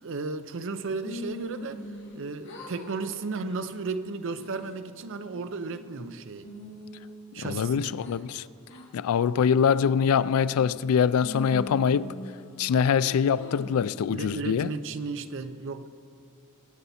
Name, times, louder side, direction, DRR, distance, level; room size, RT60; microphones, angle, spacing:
voice 1, 0.0-1.9 2.1-6.5 7.3-8.0 14.1-15.9, right 4 dB, 60° right, 0.6 m, -34 dB
sound 1, 1.0-2.2 2.4-3.0 3.4-3.7 4.2-4.8 5.3-6.0 6.4-8.2 8.7-8.9 9.4-9.9 10.4-10.9 11.2-12.8 13.3-13.9, left 1 dB, 55° left, 1.7 m, -42 dB
voice 2, 7.4-8.5 8.9-12.1 12.6-14.7, left 7 dB, 75° left, 0.3 m, -24 dB
23.0 x 8.0 x 4.2 m
head